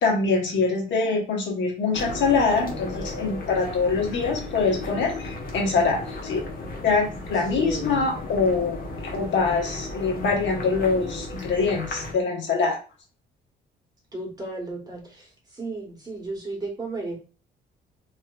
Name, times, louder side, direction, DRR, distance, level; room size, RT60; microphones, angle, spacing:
voice 1, 0.0-6.4 6.8-8.8 9.1-12.8, left 4 dB, 70° left, 0 dB, 1.3 m, -24 dB
sound 1, 1.9-12.1, left 2 dB, 50° left, 1.1 m, -35 dB
voice 2, 7.5-8.0 14.1-15.0 15.6-17.1, right 2 dB, 20° right, -1 dB, 1.5 m, -33 dB
3.2 x 3.0 x 2.4 m, 0.35 s
cardioid pair, 90°, 20 cm